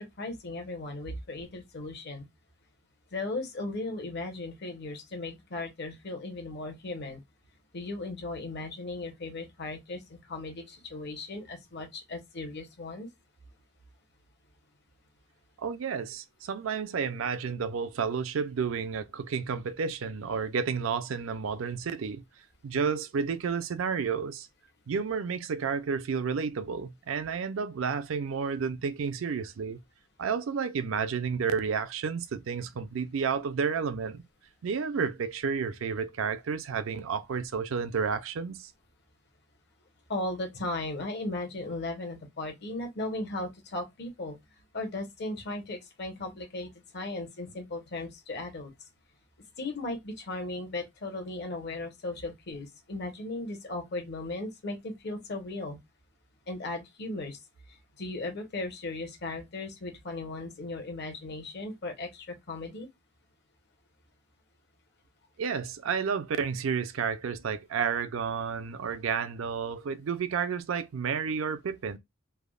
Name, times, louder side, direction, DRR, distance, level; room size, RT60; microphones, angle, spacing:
voice 1, 0.0-2.3 3.1-7.2 7.7-13.1 40.1-44.4 44.7-48.7 49.6-55.8 56.5-57.4 58.0-62.9, left 2 dB, 55° left, 0.9 m, -37 dB
voice 2, 15.6-22.2 22.6-24.5 24.9-29.8 30.2-34.2 34.6-38.7 65.4-72.0, right 6 dB, 75° right, 0.4 m, -31 dB
3.3 x 2.0 x 2.3 m
head